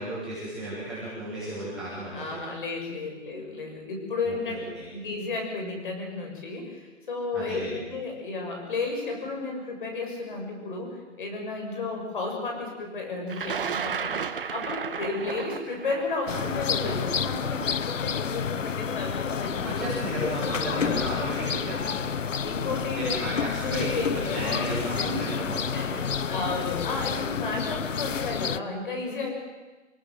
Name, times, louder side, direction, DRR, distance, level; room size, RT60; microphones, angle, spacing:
voice 1, 0.0-2.4 4.3-4.6 7.3-7.7 19.6-22.1 22.9-23.9 24.1-26.2, right 1 dB, ahead, -12 dB, 6.9 m, -34 dB
voice 2, 2.1-4.6 4.9-14.1 14.5-19.8 22.4-24.2 24.9-25.4 25.7-29.3, left 3 dB, 45° left, 2 dB, 7.6 m, -33 dB
Thunder, 13.3-19.3 20.2-20.3 21.5-21.7 22.0-22.5, right 6 dB, 45° right, 1.5 m, -34 dB
sound 1, 16.3-28.6, left 7 dB, 80° left, 1.0 m, -29 dB
27.5 x 19.5 x 7.9 m, 1.2 s
hypercardioid pair, 165°, 37 cm